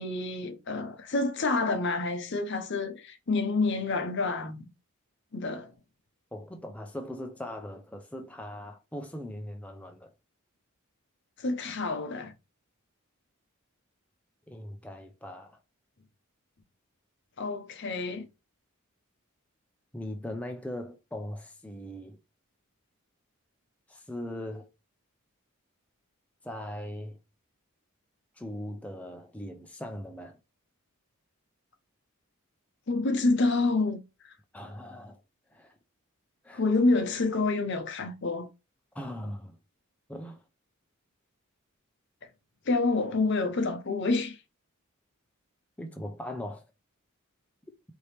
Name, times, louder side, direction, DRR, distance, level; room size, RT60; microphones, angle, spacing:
voice 1, 0.0-4.6 5.3-5.7 11.4-12.3 17.4-18.3 32.9-34.0 36.5-38.5 42.7-44.4, left 3 dB, 55° left, 0.8 m, -28 dB
voice 2, 6.3-10.1 14.5-15.6 19.9-22.2 23.9-24.7 26.4-27.2 28.4-30.4 34.5-35.2 35.5-35.7 36.4-36.6 38.9-39.5 40.1-40.4 45.8-46.7, left 1 dB, 5° left, 0.5 m, -39 dB
4.6 x 2.9 x 3.3 m
head